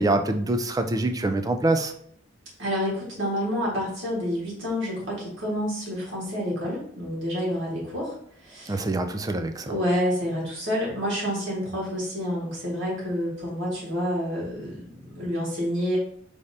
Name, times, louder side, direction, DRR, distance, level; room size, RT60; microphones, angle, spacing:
voice 1, 0.0-1.9 8.7-9.7, right 2 dB, 20° right, 7 dB, 0.3 m, -25 dB
voice 2, 2.6-8.2 8.4-8.8 9.7-16.0, equal, 70° right, -5 dB, 1.8 m, -28 dB
4.9 x 3.3 x 2.7 m, 0.63 s
head